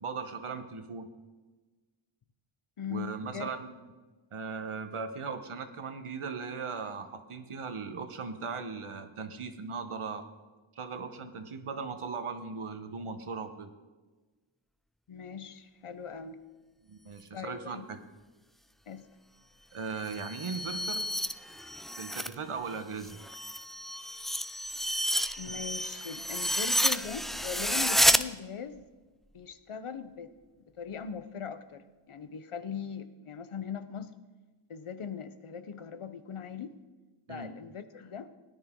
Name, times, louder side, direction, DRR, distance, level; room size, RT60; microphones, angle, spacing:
voice 1, 0.0-1.1 2.9-3.7 4.3-10.2 10.8-13.7 16.9-18.0 19.7-21.1 22.0-23.2 37.3-37.5, right 5 dB, 80° right, 8 dB, 1.2 m, -38 dB
voice 2, 2.8-3.5 15.1-16.4 17.3-17.9 18.9-19.1 25.4-28.9 29.3-30.3 30.6-34.1 34.7-36.8 37.3-38.3, left 7 dB, 80° left, 11 dB, 0.9 m, -40 dB
sound 1, 19.9-22.4 22.7-28.2, equal, ahead, 0.3 m, -30 dB
17.5 x 10.5 x 3.8 m, 1.3 s
wide cardioid pair, 75°, 50 cm